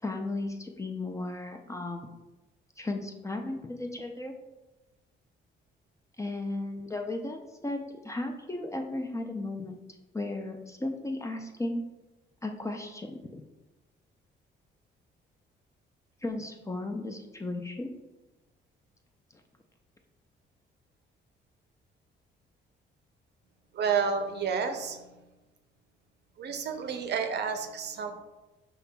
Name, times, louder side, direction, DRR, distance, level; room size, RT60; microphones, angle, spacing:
voice 1, 0.0-2.1 2.8-4.3 6.2-9.8 10.1-11.8 12.4-13.4 16.2-17.9, left 2 dB, 15° left, 3 dB, 0.4 m, -35 dB
voice 2, 23.7-25.3 26.4-28.1, right 6 dB, 60° right, 5 dB, 0.5 m, -30 dB
5.5 x 2.9 x 2.2 m, 1.1 s
cardioid pair, 90°, 20 cm